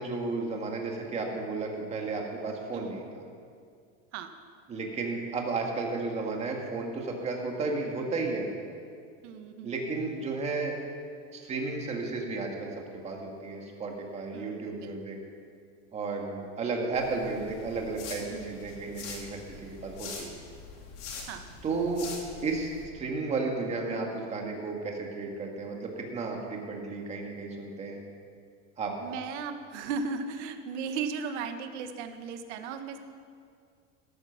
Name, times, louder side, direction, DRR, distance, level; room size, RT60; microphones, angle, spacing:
voice 1, 0.0-3.0 4.7-8.5 9.6-10.7 11.3-15.2 15.9-20.3 21.6-22.1 22.4-28.0 28.8-29.0, right 3 dB, 15° right, 1 dB, 1.9 m, -33 dB
voice 2, 2.7-3.1 4.1-4.3 9.2-9.8 14.3-14.9 18.3-19.0 21.3-21.5 29.0-33.0, right 5 dB, 65° right, 7 dB, 1.6 m, -37 dB
sound 1, 16.9-22.9, left 4 dB, 70° left, 3.9 m, -44 dB
17.5 x 13.5 x 5.9 m, 2.2 s
supercardioid pair, 180°, 38 cm